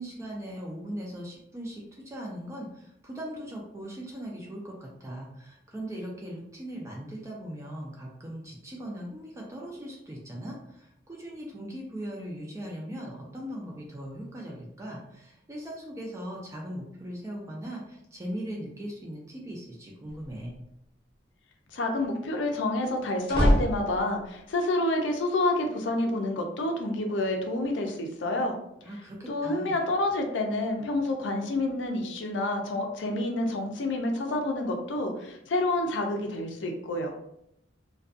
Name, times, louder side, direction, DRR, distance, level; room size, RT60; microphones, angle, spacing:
voice 1, 0.0-20.6 28.8-29.8, equal, 15° right, -2 dB, 0.3 m, -39 dB
sound 1, 20.1-20.6 22.8-24.4, equal, 30° left, 0.7 m, -26 dB
voice 2, 21.7-28.6 29.3-37.1, left 2 dB, 70° left, 3 dB, 0.5 m, -28 dB
2.4 x 2.2 x 2.5 m, 0.77 s
head